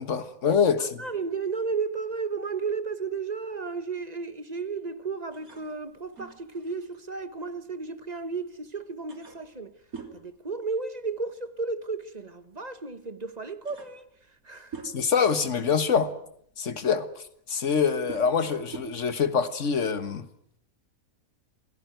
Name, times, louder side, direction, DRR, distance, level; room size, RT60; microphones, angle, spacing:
voice 1, 0.0-0.9 14.8-16.1 16.6-17.1 17.5-20.3, left 6 dB, 60° left, 1.8 m, -25 dB
voice 2, 1.0-9.8 10.1-14.1 14.4-14.8, right 4 dB, 30° right, 1.3 m, -33 dB
sound 1, 5.3-8.3 8.7-8.8 9.1-11.3 11.5-11.8 12.8-12.9 13.3-15.3 15.9-20.0, right 5 dB, 80° right, 3.4 m, -46 dB
27.5 x 17.5 x 9.2 m
omnidirectional pair, 1.5 m